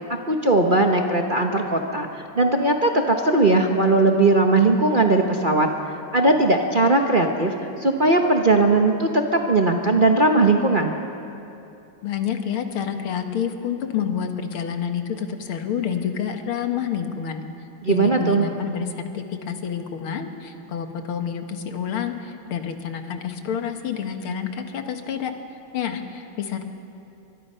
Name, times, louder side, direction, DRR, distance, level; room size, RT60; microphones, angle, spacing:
voice 1, 0.3-5.7 6.1-7.5 7.8-9.2 9.5-11.0 17.8-18.4, right 2 dB, 40° right, 3 dB, 0.7 m, -19 dB
voice 2, 12.0-17.4 17.9-25.3 25.7-26.6, left 8 dB, 75° left, 6 dB, 2.2 m, -28 dB
24.0 x 21.5 x 5.6 m, 2.8 s
omnidirectional pair, 2.4 m